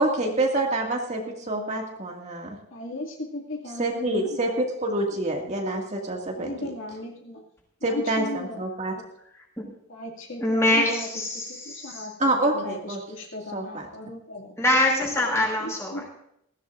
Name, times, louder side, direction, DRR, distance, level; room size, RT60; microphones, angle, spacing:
voice 1, 0.0-2.6 3.8-6.7 7.8-8.9 12.2-13.0 13.5-13.9, right 2 dB, 35° right, 0 dB, 2.2 m, -27 dB
voice 2, 2.7-4.3 6.3-7.4 7.8-8.6 8.9-9.0 9.9-11.1 11.6-14.5 15.4-16.1, left 1 dB, 60° left, -1 dB, 2.5 m, -36 dB
voice 3, 10.4-12.1 14.6-16.0, left 1 dB, 15° left, 0 dB, 5.1 m, -24 dB
20.5 x 15.5 x 2.6 m, 0.76 s
head